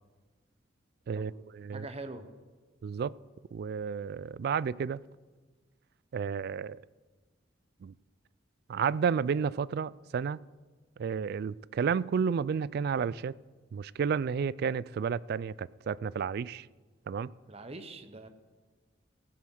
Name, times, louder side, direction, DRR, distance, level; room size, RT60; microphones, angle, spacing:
voice 1, 1.1-1.9 2.8-3.1 3.5-5.0 6.1-6.8 7.8-7.9 8.7-10.4 11.0-13.3 13.7-16.7 17.1-17.3, right 6 dB, 55° right, 0.3 m, -31 dB
voice 2, 1.7-2.3 17.5-18.3, right 2 dB, 35° right, 0.9 m, -43 dB
15.5 x 7.6 x 6.3 m
head